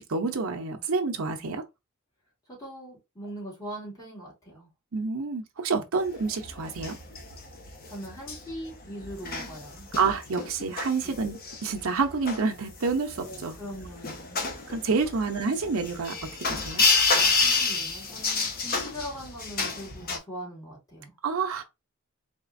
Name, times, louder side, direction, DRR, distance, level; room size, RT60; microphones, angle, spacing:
voice 1, 0.0-1.6 4.9-7.0 10.0-13.6 14.7-16.1 16.5-16.9 21.2-21.6, right 4 dB, 80° right, 0.7 m, -28 dB
voice 2, 2.5-4.7 7.8-9.9 11.0-11.3 13.2-14.4 15.2-15.5 17.4-21.2, equal, 15° left, 2.7 m, -41 dB
sound 1, 6.0-20.2, left 4 dB, 45° left, 1.0 m, -29 dB
4.0 x 3.6 x 2.5 m
head